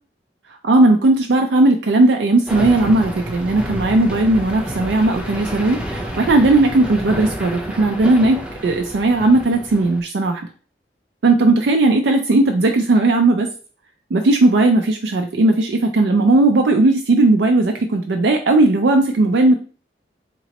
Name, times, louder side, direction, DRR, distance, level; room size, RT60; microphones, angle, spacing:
voice 1, 0.6-10.4 11.2-13.5 14.1-19.5, right 2 dB, 80° right, 4 dB, 0.4 m, -16 dB
sound 1, 2.5-10.0, equal, 5° right, 0.6 m, -29 dB
4.1 x 2.9 x 2.9 m, 0.39 s
head